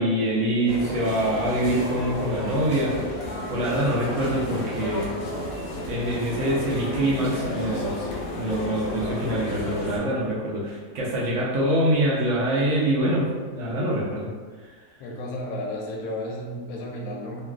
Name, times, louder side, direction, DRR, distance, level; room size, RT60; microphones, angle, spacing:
voice 1, 0.0-2.9 3.5-5.1 5.9-7.9 8.4-13.3 13.5-14.3, right 1 dB, 65° right, -5 dB, 1.0 m, -24 dB
sound 1, 0.7-10.0, left 1 dB, 55° left, 0.8 m, -32 dB
voice 2, 15.0-17.4, left 1 dB, 85° left, 0 dB, 1.0 m, -33 dB
3.2 x 2.4 x 2.3 m, 1.4 s
omnidirectional pair, 1.4 m